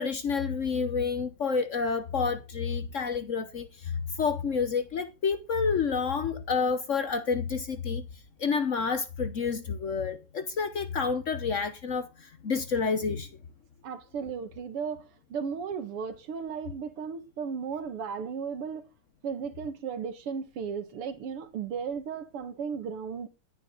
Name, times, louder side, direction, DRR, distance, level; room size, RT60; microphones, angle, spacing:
voice 1, 0.0-8.0 8.4-13.3, left 5 dB, 60° left, 0.8 m, -29 dB
voice 2, 13.8-18.8 19.2-23.3, right 6 dB, 85° right, 2.5 m, -35 dB
15.5 x 10.5 x 3.9 m
omnidirectional pair, 2.4 m